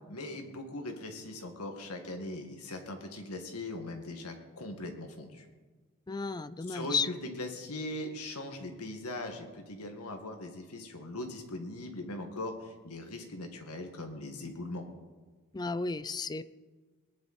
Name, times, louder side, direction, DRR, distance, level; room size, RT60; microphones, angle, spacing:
voice 1, 0.1-5.5 6.7-14.8, left 1 dB, 80° left, 4 dB, 2.0 m, -40 dB
voice 2, 6.1-7.1 15.5-16.4, left 4 dB, 20° left, 15 dB, 0.4 m, -33 dB
20.5 x 10.5 x 4.3 m, 1.4 s
head